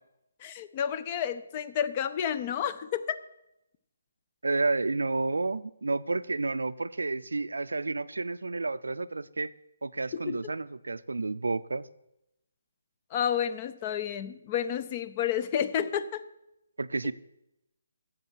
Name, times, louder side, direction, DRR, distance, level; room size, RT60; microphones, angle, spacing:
voice 1, 0.4-3.2 10.3-10.5 13.1-16.2 17.0-17.1, left 9 dB, 30° left, 13 dB, 0.6 m, -30 dB
voice 2, 4.4-9.5 9.8-11.9 16.8-17.1, right 3 dB, 80° right, 16 dB, 0.4 m, -30 dB
10.5 x 7.4 x 6.3 m, 0.88 s
figure-of-eight pair, 145°, 0 cm